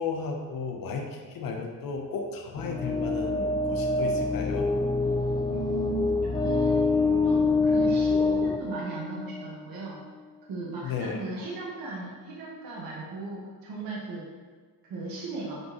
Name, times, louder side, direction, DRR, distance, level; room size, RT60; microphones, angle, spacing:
voice 1, 0.0-4.7 10.8-11.2, left 4 dB, 65° left, 2 dB, 1.1 m, -34 dB
sound 1, 2.6-9.5, left 3 dB, 10° left, 0.4 m, -26 dB
voice 2, 5.5-6.9 7.2-10.0 10.5-14.2 14.8-15.6, right 3 dB, 70° right, -5 dB, 1.6 m, -36 dB
9.2 x 5.1 x 3.2 m, 1.5 s
cardioid pair, 120°, 36 cm